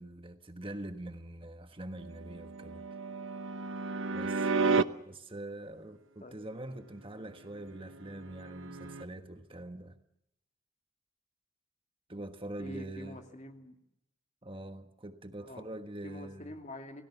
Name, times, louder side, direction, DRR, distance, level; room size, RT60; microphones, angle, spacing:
voice 1, 0.0-2.8 4.1-4.6 5.1-10.0 12.1-13.3 14.4-16.5, right 1 dB, 25° right, 1.3 m, -44 dB
sound 1, 2.0-4.8 7.8-9.0, right 4 dB, 65° right, 0.9 m, -32 dB
voice 2, 4.5-4.9 6.2-6.4 12.6-13.8 15.4-15.7 16.0-17.0, left 1 dB, 35° left, 2.7 m, -46 dB
28.5 x 18.0 x 7.0 m
head